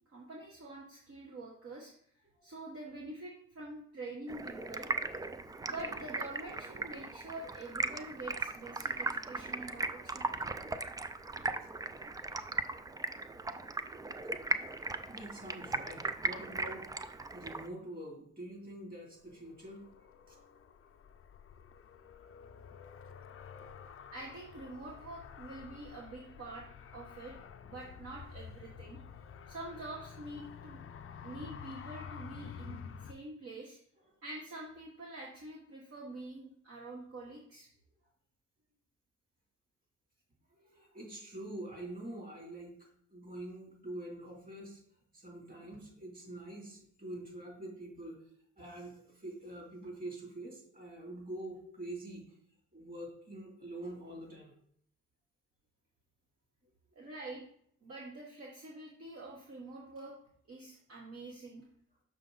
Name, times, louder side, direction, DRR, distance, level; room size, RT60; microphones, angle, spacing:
voice 1, 0.1-1.9 2.4-4.9 5.6-10.2 24.1-27.3 27.6-29.0 29.5-30.8 31.2-33.8 34.2-37.7 56.9-57.4 57.8-60.1 60.5-61.6, right 2 dB, 50° right, -2 dB, 1.4 m, -46 dB
Stream, 4.3-17.7, right 3 dB, 15° right, 0.3 m, -38 dB
voice 2, 15.1-16.9 17.3-19.8 20.3-20.4 20.7-20.8 21.9-22.1 40.5-44.8 45.1-48.2 48.5-52.3 52.7-54.6, right 1 dB, 30° right, 0 dB, 2.9 m, -46 dB
Car, 19.2-33.1, left 7 dB, 45° left, 0.6 m, -50 dB
6.5 x 5.3 x 3.9 m, 0.66 s
cardioid pair, 90°, 30 cm